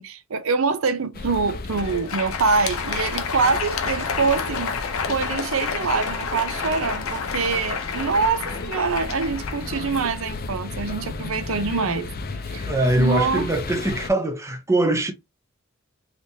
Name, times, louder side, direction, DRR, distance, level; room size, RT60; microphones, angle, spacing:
voice 1, 0.0-4.8 5.1-12.1 12.5-13.5, right 4 dB, 75° right, 0.6 m, -25 dB
sound 1, 1.1-14.1, left 3 dB, 45° left, 0.5 m, -34 dB
Crowd, 1.5-10.5, left 5 dB, 85° left, 0.7 m, -30 dB
voice 2, 12.7-15.1, right 1 dB, 15° right, 0.5 m, -22 dB
3.3 x 3.0 x 2.7 m
head